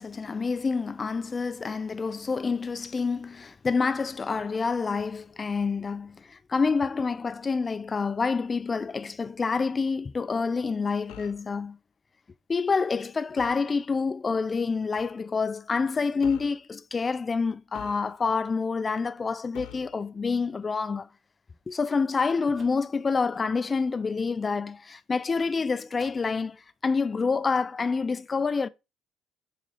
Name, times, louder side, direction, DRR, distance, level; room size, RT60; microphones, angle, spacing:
voice 1, 0.0-11.8 12.5-21.1 21.7-28.7, left 4 dB, 30° left, 0.5 m, -27 dB
sound 1, 11.1-11.5 13.4-13.7 14.9-15.2 16.2-16.6 17.7-18.4 19.5-20.0, left 12 dB, 80° left, 0.6 m, -45 dB
sound 2, 22.1-23.2 23.6-24.1 25.4-26.5 26.8-26.9 27.2-27.3 27.6-27.7, right 3 dB, 45° right, 2.2 m, -56 dB
6.1 x 4.0 x 3.9 m
supercardioid pair, 75°, 0 cm